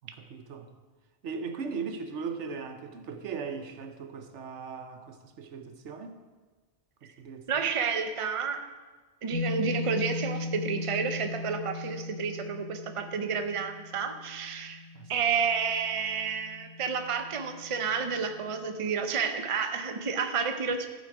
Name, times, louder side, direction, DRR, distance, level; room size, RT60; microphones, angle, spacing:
voice 1, 0.0-0.7 1.2-6.2 7.0-7.7 14.9-15.1, right 5 dB, 85° right, 7 dB, 1.1 m, -38 dB
voice 2, 7.5-8.6 9.2-14.8 15.1-20.9, right 6 dB, 35° right, 7 dB, 0.7 m, -30 dB
sound 1, 9.3-18.8, left 3 dB, 40° left, 3.4 m, -39 dB
15.0 x 5.6 x 4.9 m, 1.3 s
omnidirectional pair, 1.2 m